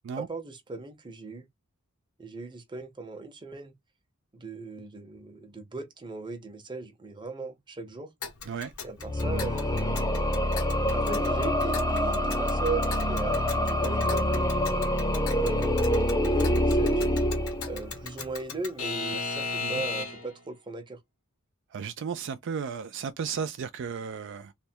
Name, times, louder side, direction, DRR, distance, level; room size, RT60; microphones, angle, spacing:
voice 1, 0.1-1.5 2.2-3.7 4.3-8.1 8.8-10.0 10.9-14.9 15.4-17.0 17.7-21.0, right 3 dB, 20° right, 0.8 m, -38 dB
Alarm / Clock, 8.2-20.4, left 5 dB, 85° left, 0.9 m, -38 dB
sound 1, 9.0-18.1, left 1 dB, 15° left, 0.6 m, -26 dB
voice 2, 21.7-24.5, right 6 dB, 60° right, 0.3 m, -34 dB
3.3 x 2.1 x 4.3 m
head